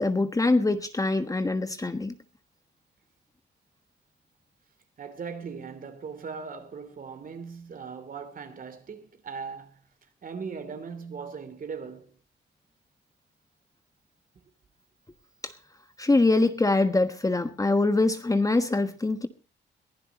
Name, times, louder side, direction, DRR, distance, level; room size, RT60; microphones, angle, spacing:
voice 1, 0.0-2.1 16.0-19.3, left 2 dB, 15° left, 1.3 m, -24 dB
voice 2, 5.0-9.8 10.2-12.2, right 5 dB, 45° right, 3.0 m, -39 dB
22.5 x 15.5 x 2.9 m
cardioid pair, 90°, 20 cm